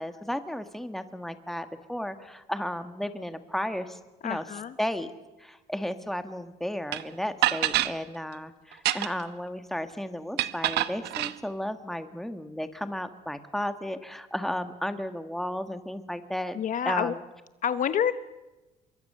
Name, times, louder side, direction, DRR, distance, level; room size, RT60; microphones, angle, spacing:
voice 1, 0.0-4.4 4.8-5.1 5.4-16.6 16.8-17.2, equal, ahead, 9 dB, 1.7 m, -34 dB
voice 2, 4.2-4.7 16.5-17.2 17.6-18.1, left 8 dB, 50° left, 12 dB, 1.0 m, -28 dB
sound 1, 6.9-7.0 7.4-7.9 8.7-9.3 10.4-11.3, right 15 dB, 80° right, 1.0 m, -26 dB
25.0 x 23.0 x 6.8 m, 1.1 s
cardioid pair, 110°, 17 cm